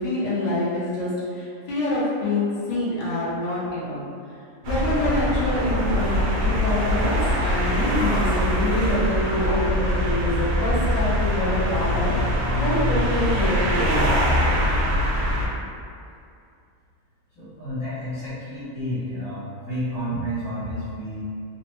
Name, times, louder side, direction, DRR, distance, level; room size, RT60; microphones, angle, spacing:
voice 1, 0.0-4.0 4.7-14.1, left 1 dB, 45° left, -8 dB, 0.6 m, -26 dB
sound 1, 4.6-15.5, equal, 65° right, 0.7 m, -23 dB
voice 2, 17.4-21.2, equal, 75° left, -16 dB, 1.4 m, -30 dB
3.1 x 2.0 x 2.9 m, 2.4 s
omnidirectional pair, 1.5 m